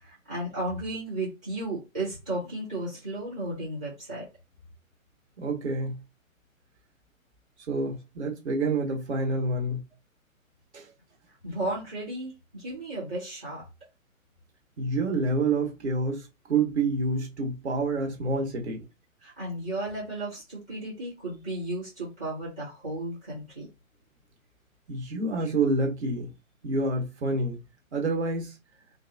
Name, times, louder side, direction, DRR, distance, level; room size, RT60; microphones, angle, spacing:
voice 1, 0.0-4.2 11.4-13.6 19.2-23.7, right 2 dB, 5° right, 0.4 m, -34 dB
voice 2, 5.4-6.0 7.7-9.8 10.7-10.9 14.8-18.8 24.9-26.3 26.6-27.6 27.9-28.6, right 3 dB, 55° right, 1.1 m, -28 dB
3.2 x 2.3 x 2.5 m
figure-of-eight pair, 130°, 41 cm